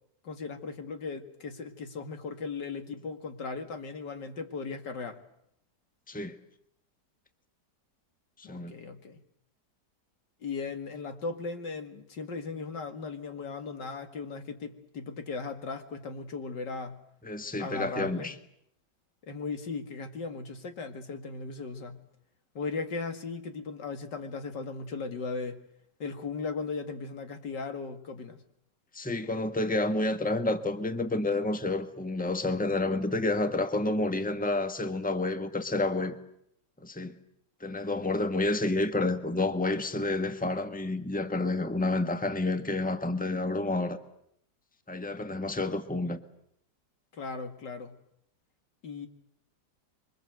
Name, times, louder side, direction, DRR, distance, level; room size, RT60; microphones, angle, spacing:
voice 1, 0.2-5.2 8.4-9.2 10.4-17.0 17.6-18.3 19.2-22.0 22.5-25.6 26.0-28.4 47.1-48.0 48.8-49.1, left 4 dB, 90° left, 2.7 m, -37 dB
voice 2, 8.4-8.7 17.2-18.3 28.9-36.2 36.8-37.1 37.6-44.0 44.9-46.2, left 2 dB, 5° left, 1.3 m, -29 dB
26.0 x 24.0 x 7.9 m
omnidirectional pair, 1.8 m